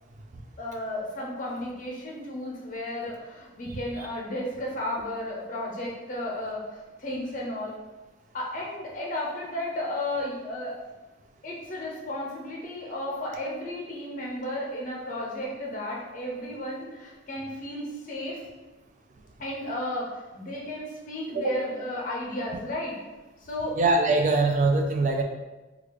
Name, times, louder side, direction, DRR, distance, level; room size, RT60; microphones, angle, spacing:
voice 1, 0.6-7.7 8.3-10.8 11.4-18.4 19.4-23.0 23.4-23.8, left 1 dB, 40° left, -3 dB, 0.7 m, -33 dB
voice 2, 23.8-25.2, right 3 dB, 40° right, 3 dB, 0.3 m, -23 dB
3.3 x 2.4 x 3.3 m, 1.1 s
head